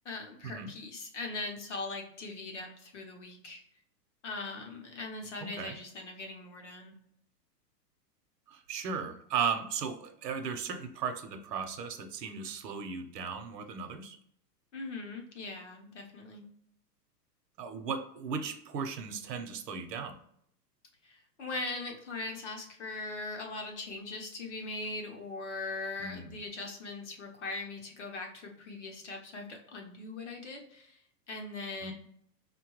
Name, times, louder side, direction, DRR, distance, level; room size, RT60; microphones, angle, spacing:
voice 1, 0.0-3.6 4.2-6.9 14.7-16.4 21.0-31.0 31.3-31.9, left 3 dB, 45° left, 2 dB, 0.8 m, -40 dB
voice 2, 5.4-5.7 8.5-14.2 17.6-20.2 26.0-26.3 31.8-31.9, right 6 dB, 75° right, 7 dB, 0.8 m, -36 dB
5.3 x 2.2 x 3.0 m, 0.68 s
hypercardioid pair, 180°, 50 cm